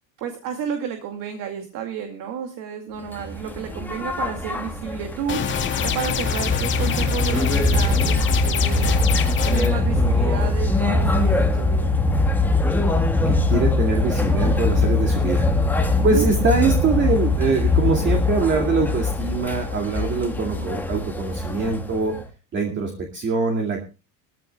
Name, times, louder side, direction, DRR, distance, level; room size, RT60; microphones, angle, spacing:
voice 1, 0.2-5.5 5.8-8.9 9.4-11.9 16.0-16.3, right 8 dB, 55° right, 5 dB, 2.4 m, -31 dB
sound 1, 3.1-22.2, left 2 dB, 5° left, 1.5 m, -22 dB
sound 2, 5.3-9.7, left 7 dB, 30° left, 2.2 m, -27 dB
voice 2, 13.2-15.5 16.0-22.2 22.5-23.8, right 4 dB, 30° right, 2 dB, 2.4 m, -23 dB
21.0 x 15.0 x 2.3 m, 0.30 s
cardioid pair, 155°, 39 cm